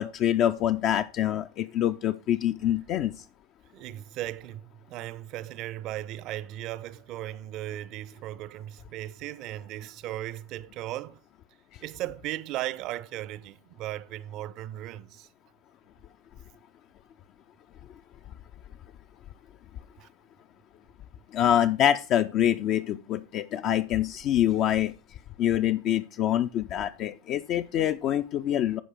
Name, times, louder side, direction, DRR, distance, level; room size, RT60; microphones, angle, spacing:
voice 1, 0.0-3.1 21.3-24.9 25.4-28.8, left 11 dB, 35° left, 0.4 m, -25 dB
voice 2, 3.7-11.2 11.8-15.3 20.0-20.1, right 14 dB, 40° right, 0.5 m, -37 dB
11.5 x 4.8 x 4.8 m
figure-of-eight pair, 90°, 0 cm